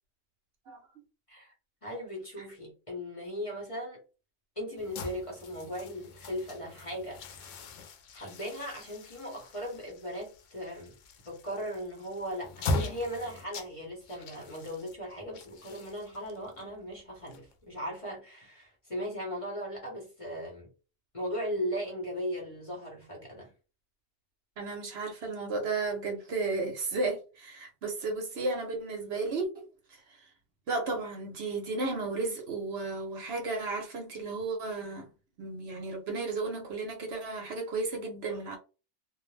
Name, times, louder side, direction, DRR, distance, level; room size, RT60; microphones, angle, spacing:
voice 1, 1.8-4.0 4.6-7.6 8.1-11.0 11.2-20.7 21.1-23.5, equal, 30° left, 0.9 m, -38 dB
sound 1, 4.8-17.8, left 2 dB, 90° left, 0.9 m, -40 dB
voice 2, 24.6-30.2 30.7-35.1 35.4-38.6, right 3 dB, 60° right, 0.9 m, -34 dB
2.5 x 2.0 x 3.1 m
omnidirectional pair, 1.3 m